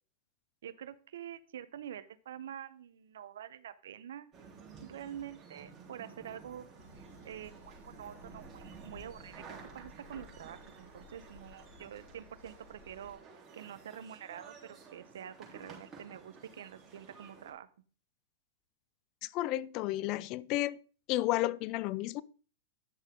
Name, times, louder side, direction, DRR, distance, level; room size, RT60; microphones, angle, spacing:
voice 1, 0.6-4.3 4.8-6.7 7.2-13.2 13.5-17.7, right 10 dB, 70° right, 0.8 m, -47 dB
sound 1, 4.3-17.5, right 5 dB, 25° right, 3.6 m, -53 dB
sound 2, 6.8-13.2, left 4 dB, 80° left, 3.8 m, -57 dB
voice 2, 19.2-20.8 21.1-22.2, left 16 dB, 45° left, 0.4 m, -32 dB
10.0 x 6.4 x 3.7 m
hypercardioid pair, 110°, 0 cm